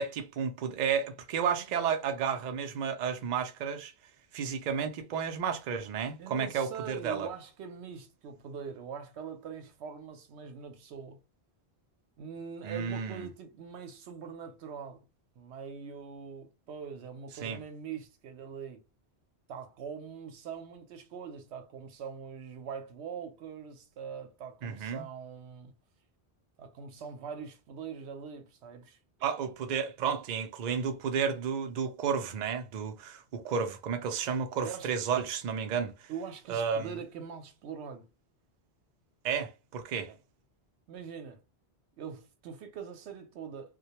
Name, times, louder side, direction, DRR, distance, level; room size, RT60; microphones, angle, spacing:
voice 1, 0.0-3.9 4.3-7.3 12.6-13.3 17.4-17.6 24.6-25.0 29.2-35.9 36.5-37.0 39.2-40.1, right 6 dB, 55° right, 0.5 m, -32 dB
voice 2, 6.2-11.2 12.2-15.1 15.4-18.8 19.5-25.7 26.6-29.0 34.6-34.9 36.1-38.1 40.1-40.2 40.9-41.4 42.0-43.8, right 6 dB, 80° right, 0.9 m, -43 dB
2.2 x 2.1 x 2.8 m
omnidirectional pair, 1.1 m